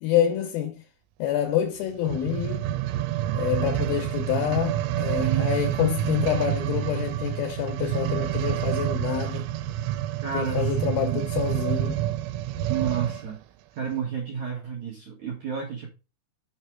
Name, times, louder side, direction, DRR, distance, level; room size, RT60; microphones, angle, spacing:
voice 1, 0.0-0.8 1.2-2.7 3.3-9.5 10.3-12.0, left 10 dB, 85° left, 2.1 m, -27 dB
sound 1, 2.0-13.3 13.9-14.0, right 13 dB, 90° right, 3.0 m, -28 dB
voice 2, 5.2-5.7 10.2-11.3 12.7-13.4 13.8-15.9, right 7 dB, 75° right, 1.6 m, -32 dB
6.6 x 4.9 x 4.5 m
omnidirectional pair, 5.4 m